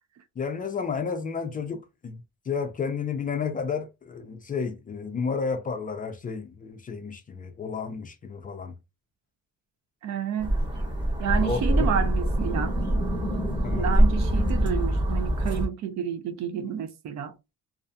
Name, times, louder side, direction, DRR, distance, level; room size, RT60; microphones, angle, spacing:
voice 1, 0.4-2.2 2.5-8.8 11.3-11.9 13.6-13.9, left 5 dB, 30° left, 0.4 m, -31 dB
voice 2, 10.0-10.5 11.2-12.7 13.7-17.4, right 8 dB, 60° right, 0.6 m, -30 dB
sound 1, 10.4-15.6, right 1 dB, 15° right, 1.0 m, -24 dB
2.6 x 2.4 x 2.2 m
cardioid pair, 140°, 31 cm